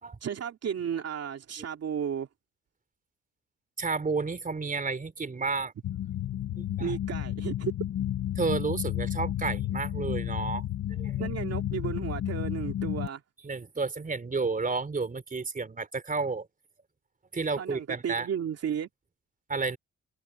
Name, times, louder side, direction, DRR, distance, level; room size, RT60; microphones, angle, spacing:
voice 1, 0.2-2.3 6.8-7.7 11.2-13.2 17.6-18.9, right 8 dB, 55° right, 2.8 m, -33 dB
voice 2, 3.8-5.7 6.6-6.9 8.4-10.6 10.9-11.3 13.4-16.5 17.3-18.3 19.5-19.8, right 4 dB, 25° right, 4.0 m, -31 dB
sound 1, 5.8-13.1, left 12 dB, 65° left, 1.9 m, -32 dB
cardioid pair, 90°, 30 cm